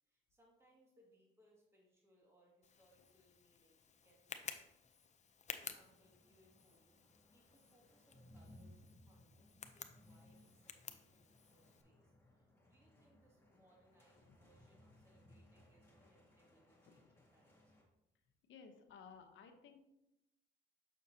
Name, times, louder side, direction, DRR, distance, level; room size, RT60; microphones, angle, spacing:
voice 1, 0.0-4.8 5.4-17.7, equal, 15° right, -3 dB, 2.0 m, -72 dB
Tick, 2.6-11.8, left 6 dB, 35° left, 0.6 m, -54 dB
sound 1, 5.6-17.8, left 1 dB, 10° left, 1.8 m, -65 dB
voice 2, 18.5-19.8, left 6 dB, 75° left, 6 dB, 0.9 m, -57 dB
6.4 x 6.3 x 2.8 m, 0.89 s
cardioid pair, 90°, 20 cm